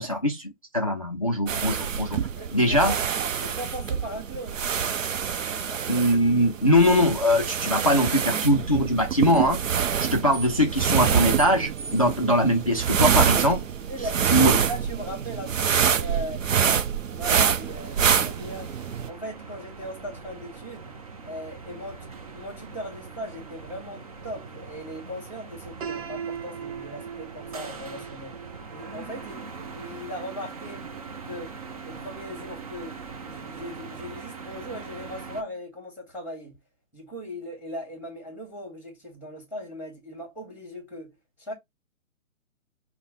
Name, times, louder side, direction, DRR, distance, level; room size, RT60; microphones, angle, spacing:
voice 1, 0.0-2.2 2.5-2.9 5.9-9.6 10.0-13.6 14.3-14.5, equal, 30° left, 0.3 m, -22 dB
sound 1, 1.5-19.1, right 7 dB, 65° right, 0.7 m, -26 dB
voice 2, 2.4-3.0 3.4-4.9 5.3-5.9 13.9-14.3 14.7-16.5 17.0-18.7 19.1-20.9 21.2-28.4 28.7-30.9 31.2-36.6 36.9-41.5, equal, 5° right, 1.5 m, -39 dB
sound 2, 17.6-35.4, right 4 dB, 30° right, 0.5 m, -41 dB
Piano, 25.8-31.7, right 7 dB, 45° right, 1.1 m, -40 dB
5.3 x 2.2 x 3.8 m
figure-of-eight pair, 135°, 41 cm